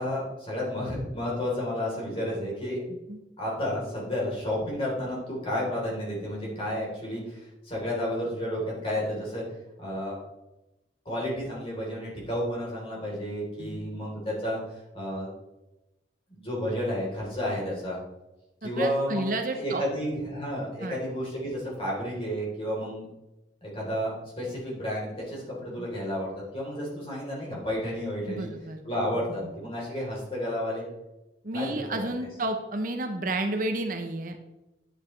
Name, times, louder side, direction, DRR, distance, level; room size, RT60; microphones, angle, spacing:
voice 1, 0.0-2.8 3.4-9.4 9.8-10.2 11.1-14.6 14.9-15.3 16.3-18.0 18.6-23.1 23.6-28.5 28.8-30.9 31.5-31.8, equal, 30° left, -4 dB, 3.5 m, -31 dB
voice 2, 18.6-19.8 20.8-21.0 25.7-25.9 28.3-28.8 29.4-29.5 31.4-34.4, right 2 dB, 50° right, 5 dB, 0.8 m, -31 dB
9.8 x 8.0 x 3.2 m, 0.96 s
head